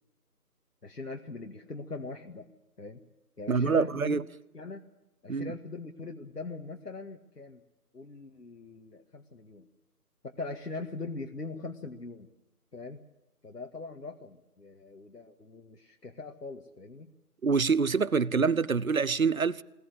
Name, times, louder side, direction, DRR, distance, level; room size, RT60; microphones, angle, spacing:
voice 1, 0.8-2.5 2.8-3.0 3.4-4.2 4.5-4.8 5.2-7.6 7.9-9.7 10.2-12.3 12.7-13.0 13.4-17.1, left 3 dB, 85° left, 2.0 m, -41 dB
voice 2, 3.5-4.2 5.3-5.5 17.4-19.6, right 5 dB, 60° right, 1.0 m, -26 dB
21.0 x 20.0 x 7.9 m
figure-of-eight pair, 165°, 47 cm